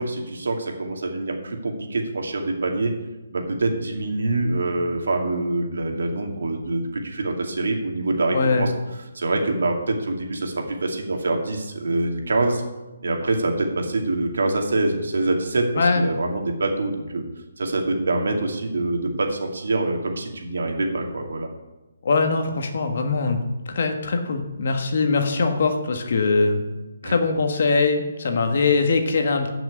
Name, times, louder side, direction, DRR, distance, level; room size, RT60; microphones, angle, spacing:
voice 1, 0.0-2.9 3.3-8.7 9.1-12.6 13.0-17.2 17.6-21.5 27.0-27.2, right 2 dB, 60° right, 2 dB, 2.4 m, -25 dB
voice 2, 8.3-8.7 15.8-16.0 22.0-23.4 23.7-26.6 27.0-29.5, left 4 dB, 40° left, 5 dB, 1.4 m, -22 dB
13.0 x 6.1 x 8.5 m, 1.1 s
hypercardioid pair, 180°, 0 cm